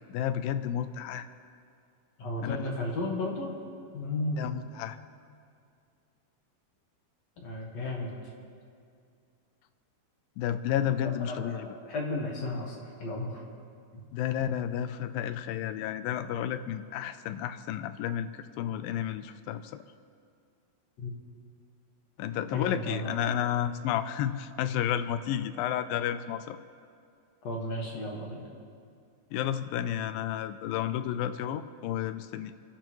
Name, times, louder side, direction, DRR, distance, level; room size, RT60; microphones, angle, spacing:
voice 1, 0.1-1.3 2.4-2.6 4.4-5.0 10.4-11.7 14.1-19.8 22.2-26.6 29.3-32.5, left 10 dB, 80° left, 12 dB, 2.3 m, -31 dB
voice 2, 2.2-3.5 3.9-4.6 7.4-8.1 11.2-13.3 13.9-14.0 21.0-21.1 22.5-23.2 27.4-28.4, left 2 dB, 55° left, -1 dB, 2.5 m, -34 dB
28.5 x 12.0 x 3.1 m, 2.3 s
omnidirectional pair, 4.2 m